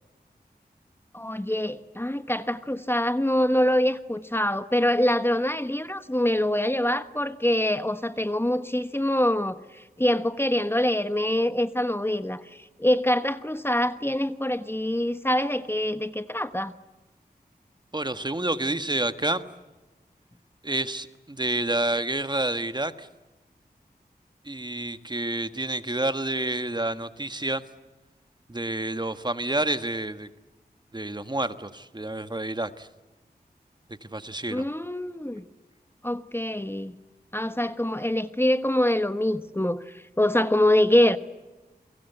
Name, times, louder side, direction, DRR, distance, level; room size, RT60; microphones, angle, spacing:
voice 1, 1.1-16.7 34.5-35.4 36.0-36.9 37.3-41.2, left 1 dB, 15° left, 11 dB, 1.2 m, -25 dB
voice 2, 17.9-19.5 20.6-23.1 24.4-27.6 28.5-30.3 30.9-32.9 34.0-34.7, right 2 dB, 25° right, 11 dB, 1.5 m, -29 dB
29.5 x 23.0 x 8.2 m, 1.1 s
wide cardioid pair, 65°, 16 cm